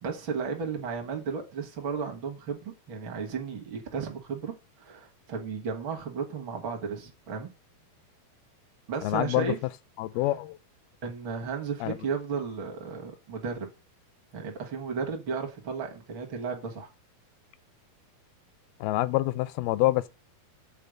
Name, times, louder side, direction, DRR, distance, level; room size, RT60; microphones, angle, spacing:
voice 1, 0.0-7.5 8.9-9.6 11.0-13.7 14.3-16.9, right 5 dB, 60° right, 1.3 m, -34 dB
voice 2, 9.0-9.5 10.0-10.6 11.8-12.0 18.8-20.1, left 17 dB, 85° left, 2.4 m, -26 dB
8.5 x 4.3 x 6.3 m
omnidirectional pair, 4.3 m